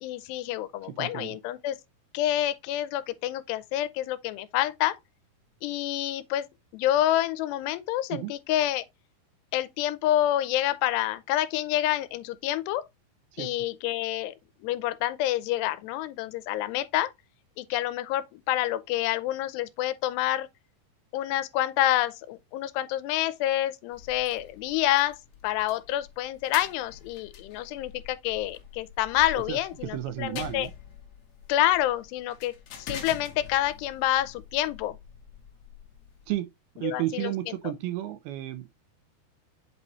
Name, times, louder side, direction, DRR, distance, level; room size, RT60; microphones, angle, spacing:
voice 1, 0.0-1.8 2.1-5.0 5.6-8.8 9.5-12.9 13.4-14.3 14.6-17.1 17.6-20.5 21.1-30.7 31.5-35.0 36.8-37.5, left 13 dB, 85° left, 2.7 m, -28 dB
voice 2, 0.8-1.4 8.1-8.3 13.3-13.5 29.5-30.7 36.3-36.5 36.8-38.8, right 14 dB, 80° right, 2.4 m, -33 dB
sound 1, 23.9-36.3, left 7 dB, 70° left, 1.7 m, -45 dB
8.2 x 4.1 x 3.0 m
omnidirectional pair, 4.9 m